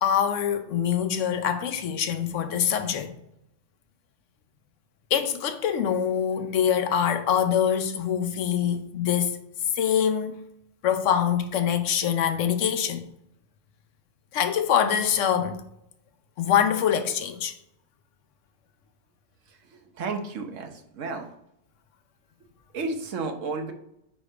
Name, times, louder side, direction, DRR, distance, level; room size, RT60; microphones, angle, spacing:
voice 1, 0.0-3.1 5.1-9.4 9.8-10.4 10.8-13.0 14.3-15.6 16.4-17.5, left 8 dB, 80° left, 1.1 m, -24 dB
voice 2, 19.5-21.3 22.7-23.7, right 3 dB, 90° right, 1.3 m, -33 dB
5.1 x 5.1 x 4.9 m
omnidirectional pair, 1.3 m